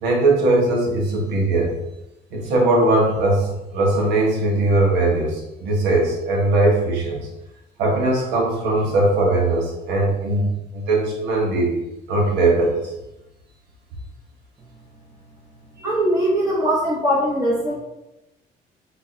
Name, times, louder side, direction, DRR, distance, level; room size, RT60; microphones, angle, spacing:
voice 1, 0.0-1.7 2.3-7.3 7.8-11.8 12.1-12.8, right 2 dB, 85° right, -1 dB, 1.3 m, -20 dB
voice 2, 15.8-17.7, equal, 20° right, -6 dB, 1.1 m, -21 dB
6.1 x 2.9 x 2.9 m, 0.92 s
cardioid pair, 110°, 17 cm